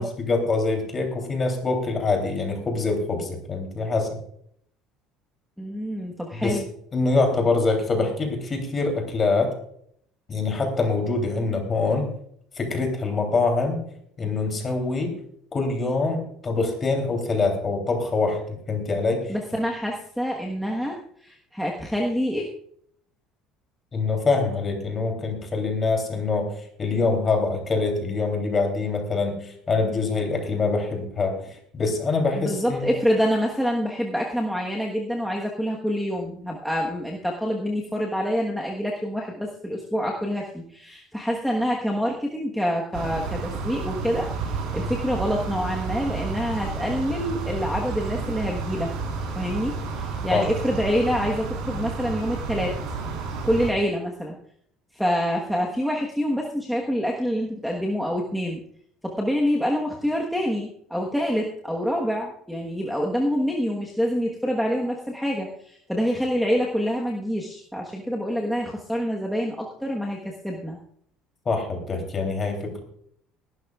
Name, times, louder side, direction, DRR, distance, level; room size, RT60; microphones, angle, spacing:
voice 1, 0.0-4.1 6.4-6.6 6.9-9.5 10.3-12.1 12.6-13.8 14.2-15.2 15.5-19.3 23.9-26.5 26.8-31.4 31.7-32.9 50.3-50.5 71.4-72.8, left 3 dB, 25° left, 3 dB, 3.1 m, -24 dB
voice 2, 5.6-6.7 19.3-22.5 32.4-48.9 49.4-52.8 53.4-54.4 54.9-58.6 59.0-70.8, equal, ahead, -2 dB, 1.2 m, -26 dB
sound 1, 42.9-53.7, right 4 dB, 65° right, 4.0 m, -31 dB
20.5 x 12.0 x 2.4 m, 0.66 s
cardioid pair, 160°, 0 cm